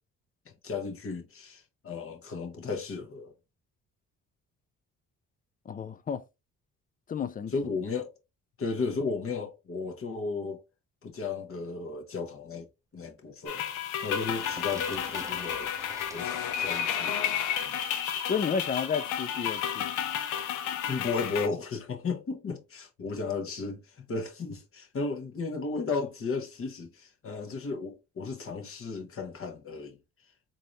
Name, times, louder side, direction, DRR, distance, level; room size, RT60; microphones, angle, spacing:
voice 1, 0.4-3.3 7.5-8.1 8.6-10.6 11.0-12.7 12.9-13.6 14.0-15.7 16.1-17.8 20.9-30.0, left 4 dB, 45° left, 1.1 m, -34 dB
voice 2, 5.7-6.2 7.1-7.5 18.3-19.9, left 6 dB, 30° left, 0.4 m, -31 dB
sound 1, 13.5-21.5, left 9 dB, 90° left, 0.7 m, -32 dB
sound 2, 13.9-18.0, right 2 dB, 10° right, 0.7 m, -47 dB
3.8 x 2.7 x 3.0 m
cardioid pair, 90°, 30 cm